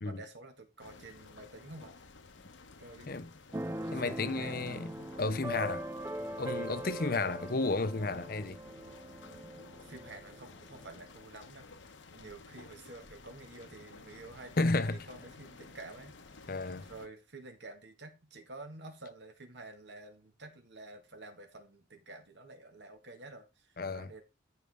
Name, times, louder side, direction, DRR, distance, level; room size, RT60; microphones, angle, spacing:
voice 1, 0.0-1.9 2.8-3.2 3.8-5.1 7.0-7.7 9.5-24.2, right 2 dB, 70° right, 2.1 m, -50 dB
sound 1, 0.8-17.1, left 3 dB, 80° left, 1.0 m, -54 dB
Keyboard (musical), 3.5-11.0, right 1 dB, 15° right, 0.4 m, -41 dB
voice 2, 3.9-4.9 5.2-5.9 6.4-8.6 14.6-15.0 16.5-16.9 23.8-24.1, left 3 dB, 50° left, 0.7 m, -32 dB
14.0 x 4.8 x 3.7 m
head